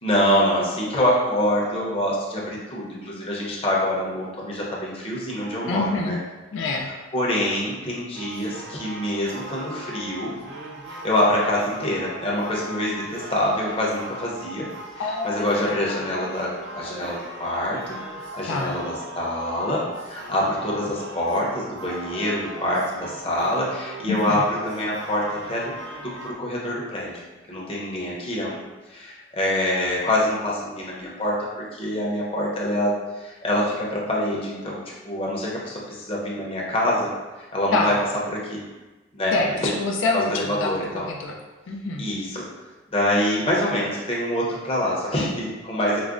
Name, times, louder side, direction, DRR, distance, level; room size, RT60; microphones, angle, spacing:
voice 1, 0.0-6.2 7.1-10.4 10.9-14.7 15.0-16.5 16.7-25.7 26.0-28.6 28.9-37.1 37.4-37.9 38.3-38.6 39.1-39.4 39.6-39.7 40.1-41.1 42.0-42.4 42.9-46.0, left 1 dB, 30° left, -5 dB, 0.7 m, -25 dB
voice 2, 5.7-6.2 6.5-6.9 15.0-16.0 18.5-18.7 24.0-24.4 37.7-37.9 39.3-41.4 41.7-42.1, left 3 dB, 80° left, 1 dB, 0.3 m, -26 dB
sound 1, 8.1-26.3, right 1 dB, 60° right, 0.4 m, -39 dB
4.8 x 2.0 x 2.4 m, 1.2 s
head